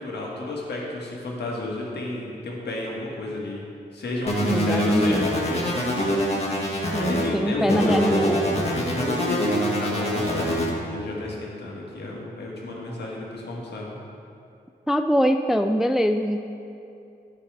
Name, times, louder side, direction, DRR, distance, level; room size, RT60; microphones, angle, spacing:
voice 1, 0.0-3.7 3.9-5.7 7.0-8.4 8.7-14.0, left 2 dB, 60° left, -3 dB, 1.8 m, -31 dB
sound 1, 4.3-7.3 7.7-10.7, equal, 35° left, 1.9 m, -24 dB
voice 2, 4.5-5.3 6.9-8.6 14.9-16.4, equal, ahead, 7 dB, 0.4 m, -23 dB
10.0 x 6.8 x 3.4 m, 2.6 s
supercardioid pair, 50°, 19 cm